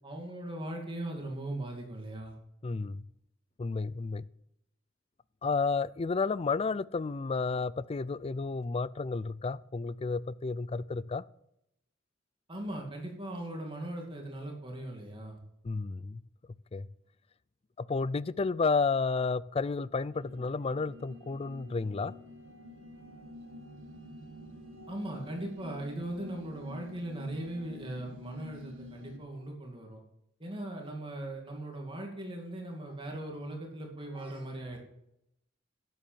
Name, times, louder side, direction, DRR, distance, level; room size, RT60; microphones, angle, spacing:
voice 1, 0.0-2.4 12.5-15.4 24.9-30.0 30.4-34.8, right 1 dB, 25° right, 1 dB, 2.5 m, -39 dB
voice 2, 2.6-3.0 3.6-4.2 5.4-11.2 15.6-16.2 16.7-16.9 17.8-22.1, left 4 dB, 30° left, 19 dB, 0.4 m, -31 dB
sound 1, 20.1-29.2, left 1 dB, 90° right, 2.0 m, -49 dB
12.0 x 7.8 x 6.9 m, 0.80 s
head